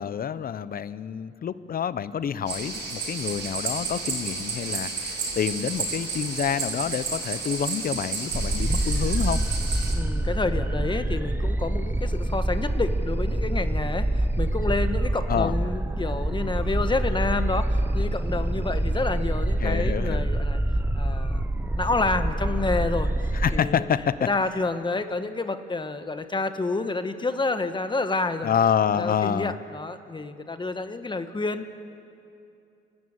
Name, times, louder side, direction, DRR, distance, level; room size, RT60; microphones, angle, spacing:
voice 1, 0.0-9.4 15.3-15.5 19.6-20.3 23.3-24.3 28.4-29.5, left 8 dB, 50° left, 15 dB, 0.8 m, -27 dB
sound 1, 2.5-9.9, right 4 dB, 65° right, 5.5 m, -31 dB
sound 2, 8.3-23.6, right 1 dB, 10° right, 0.8 m, -26 dB
voice 2, 9.9-20.6 20.9-23.1 23.5-23.8 24.3-28.5 28.9-31.7, left 3 dB, 25° left, 9 dB, 1.3 m, -29 dB
29.5 x 13.0 x 8.9 m, 2.6 s
cardioid pair, 90°, 20 cm